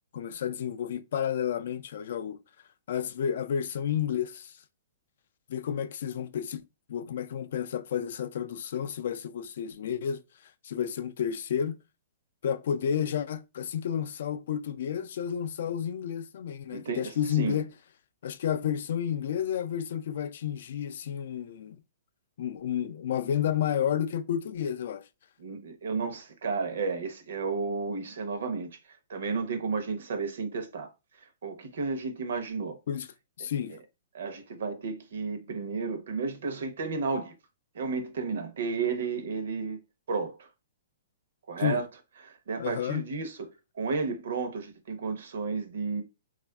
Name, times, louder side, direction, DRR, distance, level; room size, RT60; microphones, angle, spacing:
voice 1, 0.1-2.4 2.9-4.5 5.5-6.6 6.9-10.2 10.6-11.8 12.4-17.7 18.2-21.8 22.4-25.1 32.9-33.1 33.4-33.8 41.6-41.8 42.6-43.0, left 9 dB, 60° left, 0.3 m, -31 dB
voice 2, 16.7-17.6 25.4-28.7 29.1-30.9 31.2-32.8 33.7-33.8 34.1-37.3 37.7-39.8 40.1-40.5 41.5-41.9 42.2-43.5 43.8-46.0, right 4 dB, 75° right, 0.7 m, -32 dB
3.4 x 2.4 x 2.2 m
hypercardioid pair, 160°, 0 cm